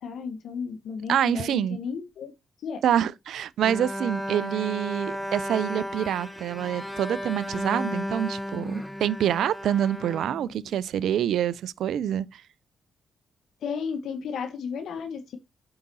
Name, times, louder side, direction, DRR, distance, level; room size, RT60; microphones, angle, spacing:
voice 1, 0.0-2.3 2.6-2.8 13.6-15.4, left 6 dB, 75° left, 1.1 m, -33 dB
voice 2, 1.1-1.8 2.8-12.4, right 10 dB, 75° right, 0.4 m, -26 dB
Bowed string instrument, 3.6-11.0, equal, 5° left, 1.2 m, -34 dB
7.7 x 4.8 x 4.1 m
supercardioid pair, 55°, 0 cm